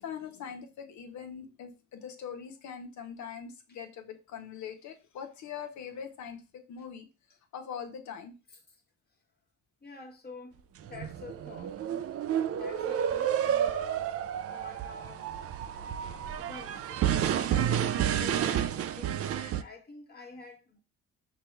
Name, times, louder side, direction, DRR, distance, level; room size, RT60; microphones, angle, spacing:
voice 1, 0.0-7.1 7.5-8.3, left 7 dB, 70° left, 1.0 m, -42 dB
voice 2, 9.8-11.8 12.5-14.2 14.5-15.3 16.4-20.8, left 4 dB, 30° left, 1.3 m, -48 dB
sound 1, 10.9-19.6, right 10 dB, 50° right, 0.4 m, -30 dB
5.9 x 2.4 x 3.2 m
cardioid pair, 90°, 30 cm